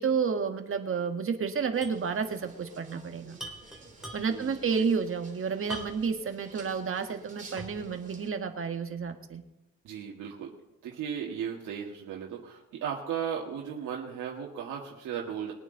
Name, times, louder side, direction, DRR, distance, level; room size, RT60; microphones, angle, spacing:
voice 1, 0.0-3.4 4.1-9.4, right 6 dB, 45° right, 6 dB, 1.7 m, -30 dB
sound 1, 1.7-8.3, right 3 dB, 25° right, 3.5 m, -52 dB
sound 2, 1.8-2.1 2.3-2.4 3.3-4.5 5.7-6.2 6.7-6.8 7.6-7.9, equal, ahead, 3.3 m, -42 dB
voice 2, 4.3-4.7 9.8-10.5 10.8-15.5, right 8 dB, 80° right, -1 dB, 1.9 m, -36 dB
22.0 x 9.1 x 4.0 m, 0.96 s
cardioid pair, 90°, 30 cm